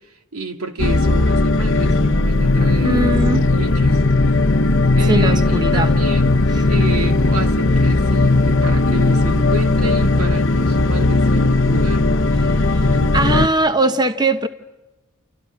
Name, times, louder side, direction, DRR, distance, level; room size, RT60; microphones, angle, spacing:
voice 1, 0.3-4.0 4.9-6.4 6.7-12.1 12.8-14.0, right 1 dB, 80° right, 2.6 m, -30 dB
sound 1, 0.8-13.5, left 2 dB, 55° left, 0.9 m, -16 dB
voice 2, 2.8-3.4 5.1-5.9 6.5-6.6 12.4-12.9 13.1-14.5, right 2 dB, 20° right, 1.0 m, -20 dB
30.0 x 29.5 x 5.9 m
head